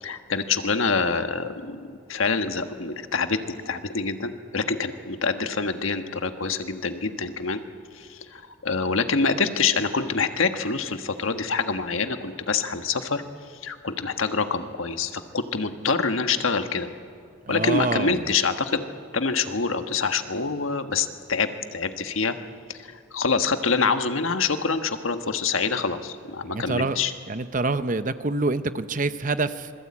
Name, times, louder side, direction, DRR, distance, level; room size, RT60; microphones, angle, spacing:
voice 1, 0.0-7.6 8.0-13.2 13.6-16.9 17.5-18.8 19.1-22.3 22.7-27.1, left 4 dB, 85° left, 8 dB, 1.4 m, -26 dB
voice 2, 17.4-18.3 26.4-27.0 27.3-29.7, right 3 dB, 40° right, 11 dB, 0.8 m, -26 dB
26.5 x 21.0 x 8.6 m, 2.2 s
head